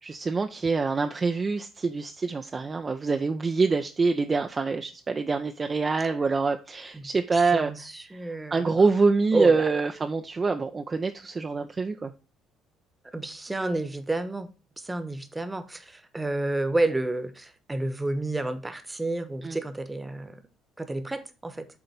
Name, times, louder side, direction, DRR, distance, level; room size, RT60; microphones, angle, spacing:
voice 1, 0.0-7.7 8.5-12.1 19.4-19.6, right 4 dB, 30° right, 0.6 m, -25 dB
voice 2, 6.9-8.7 9.3-9.6 13.1-14.5 14.8-20.4 20.8-21.7, right 2 dB, 15° right, 1.2 m, -30 dB
8.3 x 3.9 x 5.1 m
figure-of-eight pair, 50°, 0 cm